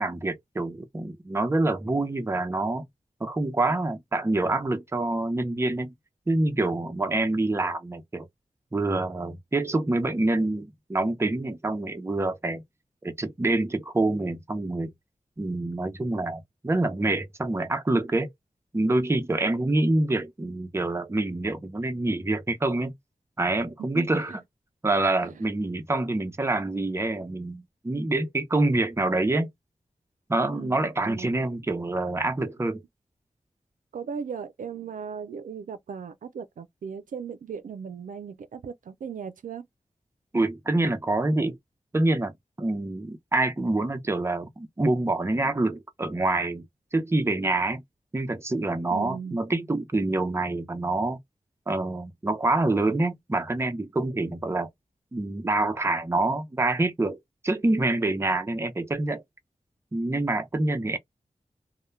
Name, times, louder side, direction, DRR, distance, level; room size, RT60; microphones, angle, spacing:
voice 1, 0.0-2.8 3.2-5.9 6.3-8.3 8.7-12.6 13.0-14.9 15.4-18.3 18.7-22.9 23.4-24.3 24.8-29.5 30.3-32.8 40.3-41.6 41.9-42.3 42.6-46.6 46.9-47.8 48.1-51.2 51.7-54.7 55.1-57.2 57.4-59.2 59.9-61.0, right 2 dB, 20° right, 0.5 m, -26 dB
voice 2, 23.9-24.4 25.2-25.3 30.5-31.3 33.9-39.6 48.9-49.4, right 6 dB, 90° right, 0.4 m, -37 dB
2.2 x 2.1 x 3.1 m
wide cardioid pair, 65°, 13 cm